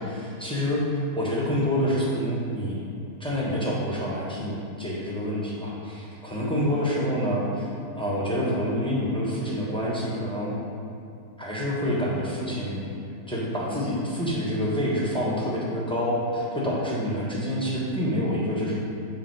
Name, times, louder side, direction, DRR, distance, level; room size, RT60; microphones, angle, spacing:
voice 1, 0.0-2.8 3.2-10.5 11.4-12.9 13.3-18.8, equal, 5° left, -6 dB, 0.9 m, -27 dB
8.3 x 3.7 x 4.7 m, 2.6 s
omnidirectional pair, 1.7 m